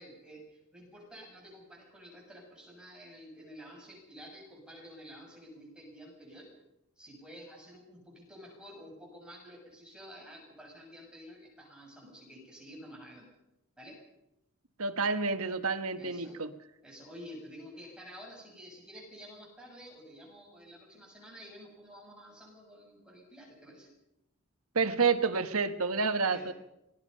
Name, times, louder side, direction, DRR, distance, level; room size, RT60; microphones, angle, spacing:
voice 1, 0.0-6.5 7.0-13.3 13.8-14.0 16.0-16.4 16.8-23.9 26.3-26.5, equal, 5° right, -2 dB, 7.4 m, -50 dB
voice 2, 14.8-16.5 24.7-26.5, right 4 dB, 80° right, 10 dB, 1.4 m, -29 dB
26.0 x 19.0 x 5.6 m, 0.88 s
head